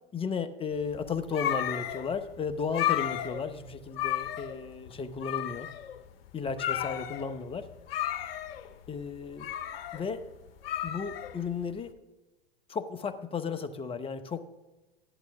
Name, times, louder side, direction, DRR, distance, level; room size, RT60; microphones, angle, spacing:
voice 1, 0.1-5.7 6.3-7.7 8.9-9.5 9.9-10.2 10.8-11.9 12.7-14.4, left 5 dB, 15° left, 9 dB, 0.9 m, -34 dB
sound 1, 0.8-11.8, left 11 dB, 70° left, 0.9 m, -34 dB
14.0 x 11.0 x 3.5 m, 1.1 s
hypercardioid pair, 110°, 31 cm